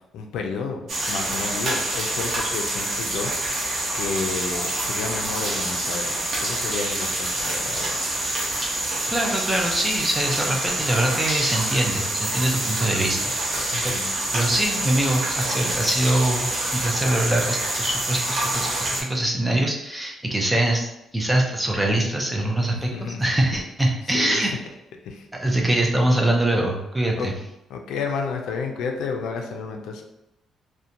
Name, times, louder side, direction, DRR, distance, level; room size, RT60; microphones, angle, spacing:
voice 1, 0.1-3.7 3.9-8.0 13.7-14.1 22.7-23.2 24.1-24.5 25.0-25.2 27.2-27.3 27.7-30.0, left 5 dB, 85° left, 3 dB, 0.4 m, -31 dB
sound 1, 0.9-19.0, right 1 dB, 50° right, 0.8 m, -26 dB
voice 2, 9.1-13.6 13.8-14.0 14.3-18.7 19.1-24.5 25.3-27.3, right 1 dB, 10° right, 0 dB, 0.4 m, -23 dB
2.8 x 2.1 x 2.5 m, 0.90 s
cardioid pair, 150°, 0 cm